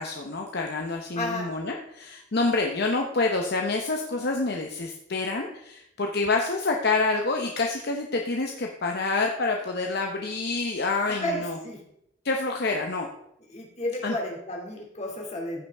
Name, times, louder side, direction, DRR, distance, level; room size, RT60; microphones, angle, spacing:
voice 1, 0.0-11.6 12.2-13.1 14.0-14.2, left 3 dB, 60° left, 2 dB, 0.8 m, -27 dB
voice 2, 1.2-1.5 11.1-11.8 13.5-15.6, left 1 dB, 35° left, -1 dB, 2.4 m, -32 dB
15.0 x 5.8 x 3.5 m, 0.78 s
head